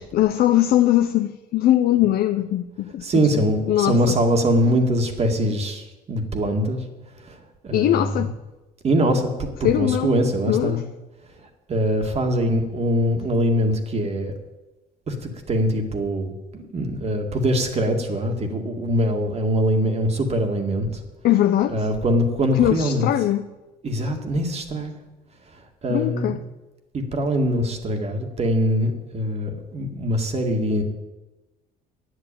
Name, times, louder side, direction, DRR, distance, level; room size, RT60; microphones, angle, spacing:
voice 1, 0.0-4.2 7.7-8.4 9.6-10.8 21.2-21.9 22.5-23.5 25.9-26.4, left 12 dB, 65° left, 0.6 m, -21 dB
voice 2, 3.0-6.8 7.2-8.2 8.8-10.8 11.4-14.3 15.1-21.0 21.7-23.1 23.8-24.9 25.5-26.4 26.9-30.8, equal, 40° right, 2.0 m, -23 dB
10.5 x 8.0 x 8.8 m
cardioid pair, 110°, 17 cm